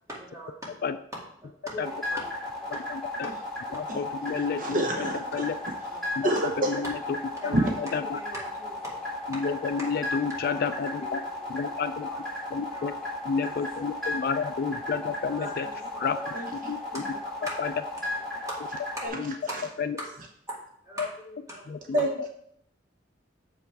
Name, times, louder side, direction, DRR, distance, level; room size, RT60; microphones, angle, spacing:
voice 1, 0.1-0.8 1.4-2.3 2.7-2.9 3.2-3.3 3.7-3.9 5.3-5.5 5.9-6.3 7.4-9.0 9.3-9.4 9.8-10.1 10.5-11.1 11.7-11.8 12.0-12.2 12.7-13.0 13.4-13.7 15.3-16.4 16.9-17.6 18.0-18.6 19.0-19.6 19.9-20.1 20.5-20.6 20.8-22.1, equal, 15° right, -4 dB, 2.2 m, -41 dB
sound 1, 1.8-19.1, left 2 dB, 5° left, 3.1 m, -35 dB
voice 2, 2.9-3.3 3.7-5.1 5.3-5.6 6.2-6.3 6.7-6.9 7.4-8.2 9.3-11.2 11.5-12.1 12.5-12.9 13.2-15.7 16.0-16.2 16.7-17.0 17.6-17.7 19.2-19.3 19.8-19.9 21.0-21.1 21.7-22.1, left 5 dB, 55° left, 11 dB, 0.3 m, -30 dB
voice 3, 4.6-5.5 6.2-6.7 7.5-7.6 16.3-16.5 19.0-19.2 21.9-22.3, right 1 dB, 45° right, 1 dB, 0.8 m, -27 dB
7.0 x 5.5 x 4.6 m, 0.70 s
head